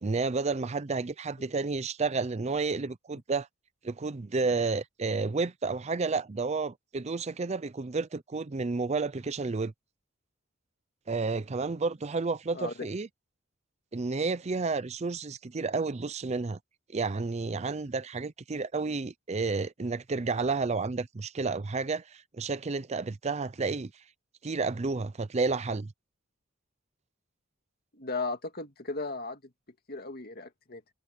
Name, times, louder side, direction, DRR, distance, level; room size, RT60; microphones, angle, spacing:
voice 1, 0.0-3.5 3.8-9.7 11.1-13.1 13.9-16.6 16.9-23.9 24.4-25.9, right 4 dB, 30° right, 0.5 m, -31 dB
voice 2, 27.9-29.4 29.9-30.8, left 3 dB, 50° left, 2.3 m, -36 dB
head